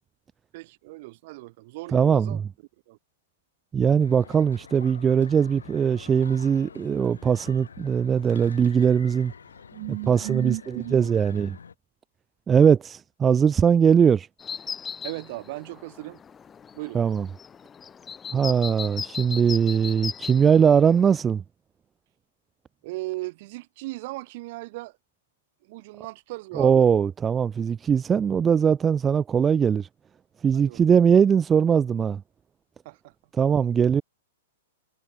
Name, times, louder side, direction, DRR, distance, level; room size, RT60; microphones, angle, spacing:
voice 1, 0.5-2.4 2.9-3.0 9.7-11.2 15.0-16.2 16.7-17.0 22.8-25.0 25.6-26.9 30.5-30.8 32.8-33.1, right 21 dB, 50° right, 7.4 m, -36 dB
voice 2, 1.9-2.5 3.7-9.3 10.1-10.5 10.9-11.6 12.5-14.3 16.9-17.3 18.3-21.4 26.5-29.9 30.4-32.2 33.4-34.0, right 7 dB, 20° right, 0.3 m, -20 dB
sound 1, 4.0-11.7, left 6 dB, 80° left, 5.4 m, -47 dB
sound 2, 14.4-21.2, left 7 dB, 20° left, 3.8 m, -38 dB
hypercardioid pair, 110°, 0 cm